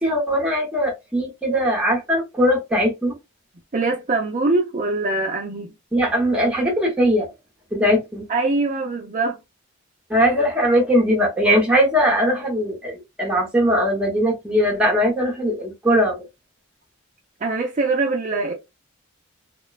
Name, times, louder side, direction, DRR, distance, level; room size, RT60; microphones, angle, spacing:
voice 1, 0.0-3.2 5.9-7.3 7.7-8.3 10.1-16.3, equal, 5° right, 0.9 m, -20 dB
voice 2, 3.7-5.7 8.3-9.4 17.4-18.5, right 3 dB, 35° right, 0.5 m, -23 dB
2.9 x 2.2 x 2.3 m
head